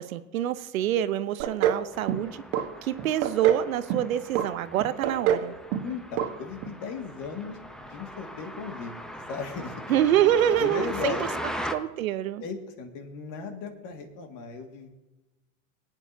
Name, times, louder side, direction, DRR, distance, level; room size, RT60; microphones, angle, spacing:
voice 1, 0.0-2.4 2.8-5.5 9.9-11.2 11.7-12.4, right 11 dB, 80° right, 13 dB, 0.8 m, -26 dB
sound 1, 1.4-1.8 2.1-2.6 3.0-3.6 3.9-4.5 4.8-5.5 5.7-5.9 6.2-6.3 6.6-6.7, right 10 dB, 55° right, 1.2 m, -25 dB
sound 2, 1.9-11.7, equal, ahead, 0.6 m, -40 dB
voice 2, 5.8-8.9 9.3-9.9 10.6-11.4 12.4-14.9, left 5 dB, 50° left, 5 dB, 2.0 m, -36 dB
22.5 x 8.8 x 2.7 m, 1.1 s
hypercardioid pair, 110°, 40 cm